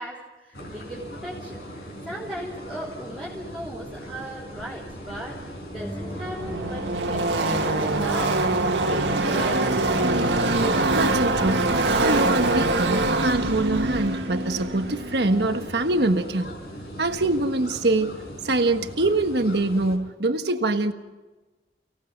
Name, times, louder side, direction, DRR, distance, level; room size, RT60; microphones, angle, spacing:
voice 1, 0.0-1.6 2.0-10.1, right 1 dB, 5° right, 4.0 m, -37 dB
sound 1, 0.5-20.0, equal, 65° left, 5.5 m, -39 dB
Car passing by / Race car auto racing, 5.5-16.1, right 2 dB, 85° right, 2.0 m, -24 dB
sound 2, 5.8-12.7, equal, 20° left, 3.2 m, -37 dB
voice 2, 10.9-11.7 12.0-16.6 17.0-18.2 18.4-20.9, right 2 dB, 70° right, 1.4 m, -24 dB
30.0 x 18.0 x 5.3 m
head